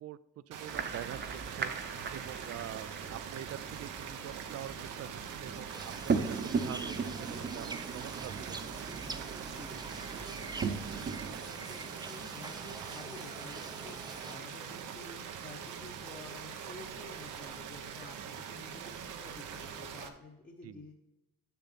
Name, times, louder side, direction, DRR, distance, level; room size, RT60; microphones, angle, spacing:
voice 1, 0.5-1.7 2.1-8.5 20.6-20.8, right 11 dB, 55° right, 18 dB, 0.5 m, -45 dB
sound 1, 0.5-20.1, right 7 dB, 85° right, 0.9 m, -43 dB
sound 2, 0.7-11.4, right 5 dB, 35° right, 0.9 m, -38 dB
sound 3, 5.7-14.4, right 3 dB, 15° right, 0.6 m, -46 dB
voice 2, 9.4-20.9, left 2 dB, 30° left, -2 dB, 1.1 m, -51 dB
6.9 x 6.7 x 4.1 m, 0.98 s
cardioid pair, 90°, 30 cm